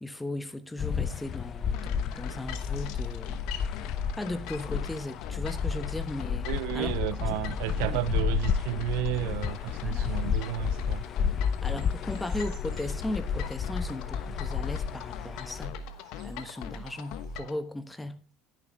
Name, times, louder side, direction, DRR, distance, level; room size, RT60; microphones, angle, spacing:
voice 1, 0.0-3.4 4.2-6.5 6.7-7.0 7.3-8.0 9.8-10.1 11.6-15.8 16.2-18.2, left 1 dB, 10° left, 1.1 m, -37 dB
sound 1, 0.8-15.7, left 7 dB, 40° left, 0.7 m, -31 dB
sound 2, 1.7-17.6, left 6 dB, 70° left, 1.1 m, -42 dB
voice 2, 6.5-11.0, right 16 dB, 80° right, 0.6 m, -32 dB
sound 3, 9.3-17.4, right 7 dB, 45° right, 2.3 m, -58 dB
11.0 x 10.0 x 3.5 m
supercardioid pair, 110°, 0 cm